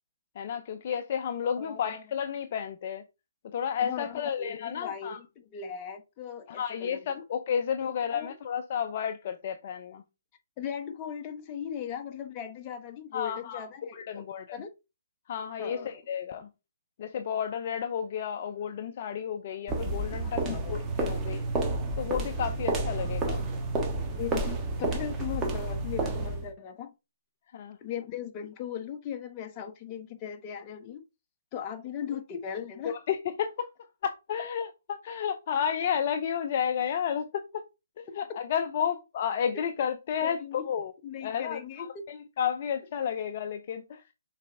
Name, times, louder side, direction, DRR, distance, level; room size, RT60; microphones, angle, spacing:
voice 1, 0.4-3.0 3.5-5.2 6.5-10.0 13.1-13.7 13.9-14.6 15.3-16.5 17.0-20.4 20.7-21.5 22.0-23.5 27.5-27.8 32.8-37.6 38.0-40.9 41.2-44.0, left 8 dB, 45° left, 0.6 m, -32 dB
voice 2, 1.6-2.0 3.8-7.0 7.8-8.3 10.6-14.2 14.5-14.7 15.6-16.0 20.2-20.8 24.1-26.9 27.8-31.0 31.5-33.0 40.2-40.7 41.0-42.0, left 8 dB, 25° left, 1.1 m, -38 dB
sound 1, 19.7-26.5, right 2 dB, 15° right, 1.3 m, -30 dB
6.6 x 4.2 x 3.4 m
hypercardioid pair, 145°, 0 cm